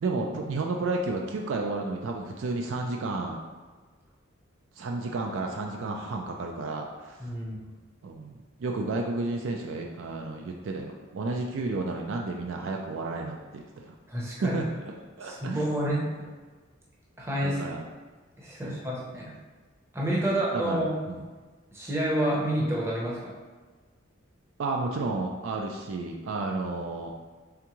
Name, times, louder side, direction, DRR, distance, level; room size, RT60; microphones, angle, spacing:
voice 1, 0.0-3.4 4.8-7.3 8.0-8.3 8.6-13.9 14.4-15.6 17.4-17.9 18.6-18.8 20.2-21.2 24.6-27.1, right 3 dB, 70° right, 1 dB, 0.4 m, -32 dB
voice 2, 7.2-7.6 14.1-14.6 15.2-16.0 17.2-17.6 18.4-19.3 19.9-20.9 21.7-23.3, right 1 dB, 15° right, -5 dB, 0.7 m, -29 dB
3.6 x 3.4 x 3.0 m, 1.4 s
head